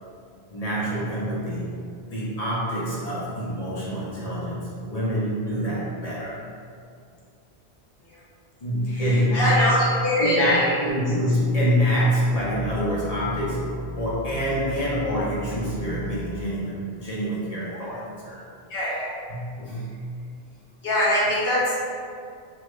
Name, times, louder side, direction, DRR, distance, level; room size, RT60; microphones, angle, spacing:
voice 1, 0.5-1.8 2.1-6.4 8.6-9.8 10.2-18.4 19.3-20.0, equal, 45° left, -7 dB, 0.6 m, -26 dB
voice 2, 8.8-10.8 17.7-17.8 18.7-19.1 20.8-21.7, equal, 65° left, -7 dB, 0.9 m, -24 dB
sound 1, 12.3-16.5, left 1 dB, 50° right, 0.5 m, -37 dB
3.0 x 2.1 x 3.1 m, 2.3 s
omnidirectional pair, 1.1 m